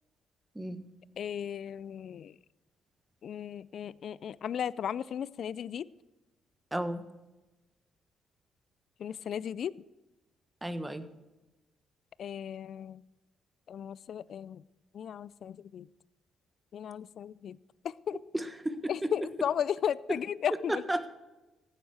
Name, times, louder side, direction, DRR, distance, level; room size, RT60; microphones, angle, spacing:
voice 1, 1.2-2.3 3.2-5.9 9.0-9.7 12.2-13.0 13.7-14.6 14.9-15.9 16.7-17.6 18.1-18.2 18.9-20.8, left 8 dB, 65° left, 20 dB, 0.3 m, -35 dB
voice 2, 6.7-7.0 10.6-11.0 18.3-19.1 20.7-21.1, right 1 dB, 15° right, 10 dB, 1.4 m, -33 dB
15.0 x 9.3 x 4.8 m, 1.1 s
supercardioid pair, 55°, 0 cm